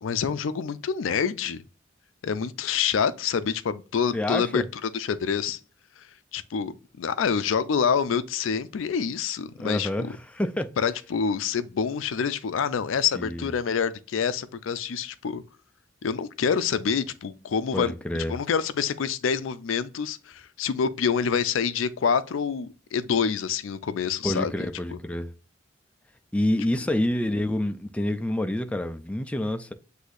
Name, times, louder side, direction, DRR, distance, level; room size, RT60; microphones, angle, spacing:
voice 1, 0.0-1.6 2.2-5.6 6.3-10.2 10.8-15.4 16.0-17.9 18.3-25.0, left 6 dB, 80° left, 0.4 m, -27 dB
voice 2, 4.1-4.6 9.6-10.7 13.1-13.5 17.7-18.3 24.2-25.3 26.3-29.7, left 1 dB, 5° left, 0.4 m, -27 dB
8.0 x 2.7 x 2.4 m
head